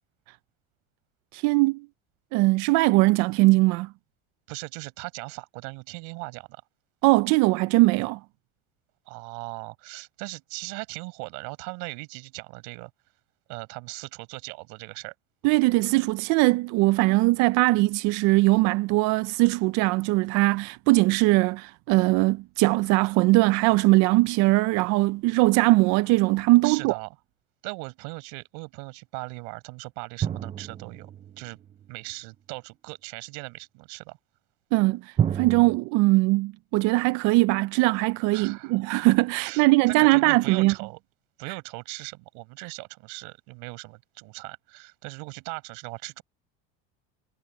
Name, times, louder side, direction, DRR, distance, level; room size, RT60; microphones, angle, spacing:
voice 1, 1.3-1.9 2.3-3.9 7.0-8.2 15.4-27.0 34.7-40.7, right 22 dB, 60° right, 0.5 m, -21 dB
voice 2, 4.5-6.6 9.1-12.9 13.5-15.1 26.6-27.2 27.6-31.1 31.4-31.6 31.9-34.2 38.3-38.8 39.4-41.0 41.4-46.2, right 31 dB, 75° right, 5.6 m, -39 dB
sound 1, 30.2-31.9 35.2-35.8, right 9 dB, 20° right, 0.6 m, -29 dB
cardioid pair, 155°, 33 cm